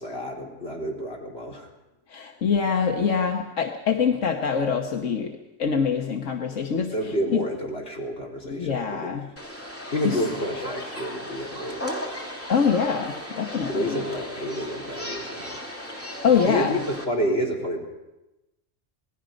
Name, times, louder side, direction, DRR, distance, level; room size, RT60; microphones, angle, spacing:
voice 1, 0.0-1.7 6.9-9.2 9.9-11.9 13.7-15.6 16.4-17.8, equal, 55° left, -2 dB, 4.3 m, -29 dB
voice 2, 2.1-6.9 7.3-7.4 8.5-9.3 10.0-10.2 12.5-14.0 15.9-16.7, left 6 dB, 85° left, 3 dB, 1.5 m, -24 dB
sound 1, 9.4-17.1, equal, 10° left, 2.7 m, -36 dB
27.0 x 19.5 x 5.2 m, 0.97 s
omnidirectional pair, 1.3 m